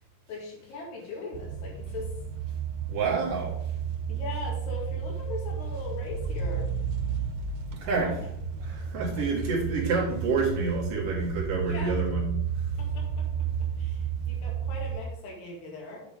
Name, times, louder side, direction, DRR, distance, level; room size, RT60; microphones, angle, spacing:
voice 1, 0.3-2.1 4.1-6.7 7.9-8.1 9.2-9.3 11.7-12.0 12.9-13.0 13.8-16.0, left 3 dB, 60° left, -3 dB, 4.1 m, -39 dB
sound 1, 1.3-15.0, right 7 dB, 90° right, 3.4 m, -32 dB
voice 2, 2.9-3.6 7.7-8.3 8.6-12.7, right 4 dB, 55° right, -3 dB, 2.6 m, -28 dB
8.6 x 7.9 x 3.6 m, 0.69 s
omnidirectional pair, 6.0 m